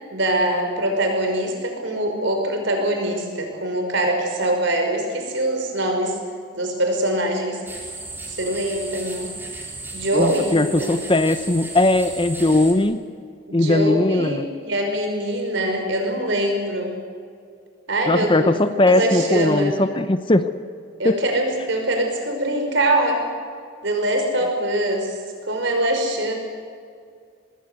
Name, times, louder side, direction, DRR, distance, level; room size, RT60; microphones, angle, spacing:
voice 1, 0.1-6.2 6.5-7.6 8.3-9.3 9.9-10.9 13.5-16.9 17.9-18.6 18.9-19.7 21.0-23.2 23.8-25.2 25.5-26.3, right 1 dB, 60° right, 3 dB, 5.5 m, -23 dB
sound 1, 7.7-12.7, right 2 dB, 10° right, 3.7 m, -35 dB
voice 2, 10.1-13.0 13.5-14.5 18.1-20.5 21.0-21.2, left 2 dB, 25° left, 11 dB, 0.8 m, -19 dB
25.5 x 20.5 x 8.2 m, 2.2 s
head